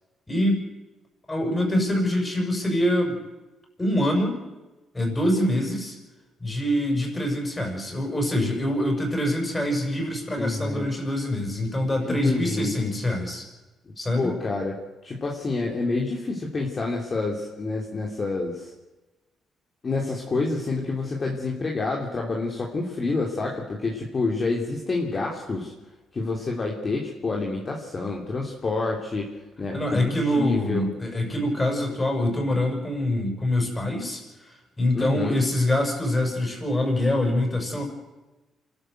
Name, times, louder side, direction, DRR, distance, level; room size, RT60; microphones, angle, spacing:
voice 1, 0.3-0.7 1.3-3.2 3.8-4.4 4.9-6.0 6.4-13.4 14.0-14.3 29.7-37.8, left 1 dB, 20° left, 3 dB, 6.8 m, -25 dB
voice 2, 10.4-10.8 12.0-13.2 14.1-14.7 15.0-18.7 19.8-25.7 26.1-29.3 29.6-30.8 34.9-35.4, left 3 dB, 35° left, -1 dB, 3.2 m, -28 dB
27.5 x 13.0 x 8.0 m, 1.1 s
cardioid pair, 90°, 0 cm